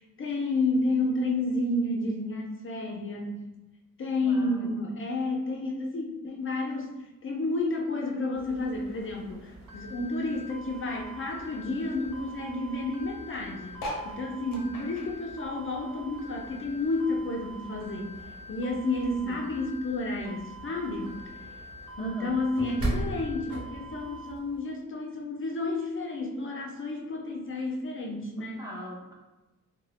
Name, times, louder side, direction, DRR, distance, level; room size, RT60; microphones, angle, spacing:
voice 1, 0.0-3.4 4.0-6.9 7.2-18.2 18.5-21.2 22.0-28.7, left 2 dB, 40° left, 1 dB, 0.4 m, -31 dB
voice 2, 4.2-4.8 19.2-19.5 22.0-22.4 22.8-22.9 28.4-29.1, right 1 dB, 10° right, -5 dB, 0.5 m, -42 dB
sound 1, 8.3-24.6, right 1 dB, 45° right, 1.0 m, -42 dB
sound 2, 9.7-24.3, equal, 75° right, 0.5 m, -46 dB
sound 3, 13.7-16.5 16.8-18.4 18.9-19.0 19.1-19.2 19.4-19.8 20.6-20.7, equal, 85° left, 0.7 m, -41 dB
2.4 x 2.2 x 3.2 m, 1.0 s
cardioid pair, 100°, 33 cm